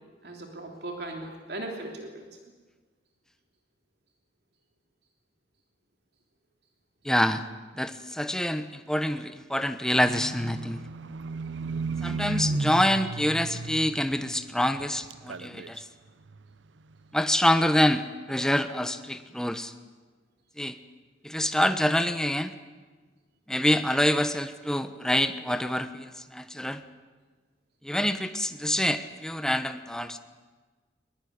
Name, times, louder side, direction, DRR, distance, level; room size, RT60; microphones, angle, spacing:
voice 1, 0.2-2.2, right 2 dB, 60° right, 2 dB, 3.2 m, -38 dB
voice 2, 7.0-7.4 7.8-10.8 12.0-15.8 17.1-19.7 20.6-20.8 21.2-22.5 23.5-26.8 27.8-30.2, left 1 dB, 5° left, 10 dB, 1.1 m, -26 dB
Livestock farm animals working animals, 10.1-14.8 15.1-15.8 16.3-16.4, right 3 dB, 85° right, 0.7 m, -34 dB
23.0 x 21.5 x 9.7 m, 1.4 s
head